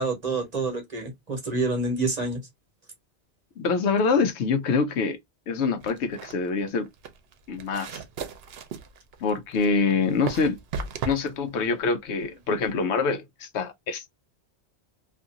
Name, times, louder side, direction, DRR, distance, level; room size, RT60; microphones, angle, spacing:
voice 1, 0.0-2.4, right 3 dB, 40° right, 1.0 m, -27 dB
voice 2, 3.6-5.2 5.5-6.9 7.5-7.9 9.2-10.6 11.0-14.1, left 4 dB, 80° left, 0.9 m, -25 dB
sound 1, 5.8-12.8, right 5 dB, 70° right, 0.8 m, -37 dB
2.6 x 2.4 x 2.6 m
omnidirectional pair, 1.1 m